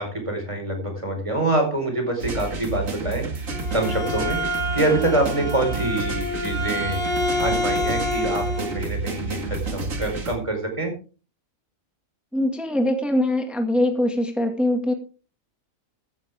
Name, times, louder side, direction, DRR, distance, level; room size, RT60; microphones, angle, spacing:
voice 1, 0.0-4.4 4.7-7.0 7.4-10.9, right 2 dB, 20° right, 3 dB, 4.5 m, -25 dB
sound 1, 2.2-10.4, right 3 dB, 70° right, 2.2 m, -30 dB
Bowed string instrument, 3.3-8.8, left 1 dB, 40° right, 6.1 m, -28 dB
voice 2, 12.3-14.9, left 1 dB, ahead, 4 dB, 1.8 m, -22 dB
15.5 x 11.0 x 3.5 m, 0.36 s
omnidirectional pair, 1.4 m